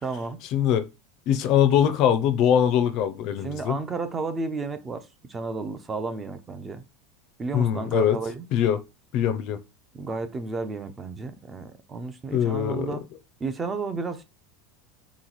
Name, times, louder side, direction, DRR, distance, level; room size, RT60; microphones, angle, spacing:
voice 1, 0.0-0.4 3.4-6.8 7.4-8.4 9.9-13.0 13.4-14.2, right 4 dB, 15° right, 0.5 m, -32 dB
voice 2, 0.5-0.9 1.3-3.8 7.5-8.2 8.5-8.8 9.1-9.6 12.3-12.9, left 9 dB, 45° left, 0.5 m, -22 dB
3.8 x 3.1 x 3.9 m
supercardioid pair, 165°, 0 cm